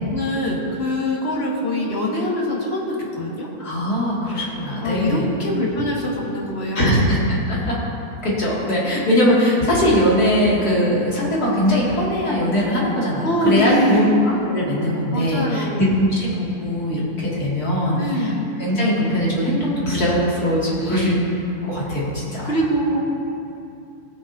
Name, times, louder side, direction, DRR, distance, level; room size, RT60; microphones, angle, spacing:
voice 1, 0.1-3.5 4.8-7.0 13.2-14.3 15.1-15.9 18.0-18.5 20.8-21.1 22.4-23.0, equal, 45° left, -4 dB, 1.9 m, -23 dB
voice 2, 3.6-5.3 6.7-7.2 7.5-7.7 8.2-14.2 14.5-18.3 18.6-21.1 21.6-22.5, equal, 80° left, -7 dB, 2.9 m, -20 dB
20.5 x 7.3 x 2.7 m, 2.9 s
omnidirectional pair, 1.6 m